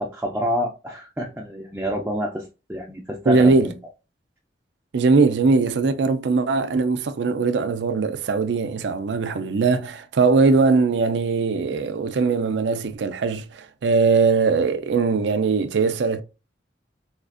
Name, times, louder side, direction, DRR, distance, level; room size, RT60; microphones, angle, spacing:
voice 1, 0.0-3.7, equal, 10° right, 0.4 m, -28 dB
voice 2, 3.3-3.7 4.9-16.2, right 4 dB, 75° right, 0.4 m, -20 dB
4.2 x 2.4 x 2.4 m
head